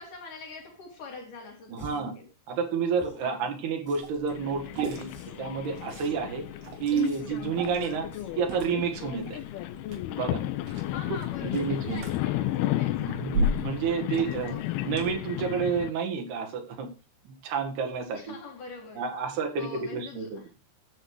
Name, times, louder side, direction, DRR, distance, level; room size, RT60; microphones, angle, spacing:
voice 1, 0.0-2.3 3.2-3.6 10.9-13.3 14.4-14.9 18.1-19.1 19.6-20.5, left 4 dB, 55° left, 3.2 m, -44 dB
voice 2, 1.7-2.1 2.5-5.1 5.4-6.4 6.8-8.1 8.4-9.4 10.1-10.4 11.1-12.0 13.0-14.6 14.8-16.9 17.3-18.4 19.0-20.4, right 6 dB, 70° right, 3.6 m, -30 dB
sound 1, 1.8-2.1 2.9-3.3 3.9-4.4 5.1-5.5 5.9-6.3 7.0-7.5 8.1-8.5, right 1 dB, 20° left, 0.4 m, -49 dB
Liquid, 4.0-15.1, equal, 90° right, 5.0 m, -37 dB
sound 2, 4.3-15.9, left 15 dB, 75° left, 2.5 m, -33 dB
10.0 x 8.2 x 4.8 m
omnidirectional pair, 5.0 m